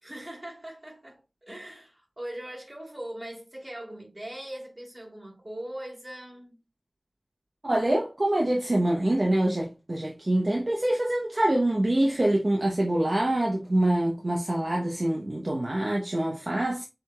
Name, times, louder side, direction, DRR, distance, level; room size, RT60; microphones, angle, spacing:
voice 1, 0.0-6.6, right 1 dB, 25° right, 2.7 m, -40 dB
voice 2, 7.6-16.8, right 1 dB, 50° right, 0.8 m, -25 dB
6.9 x 3.0 x 2.3 m
wide cardioid pair, 55°, 0 cm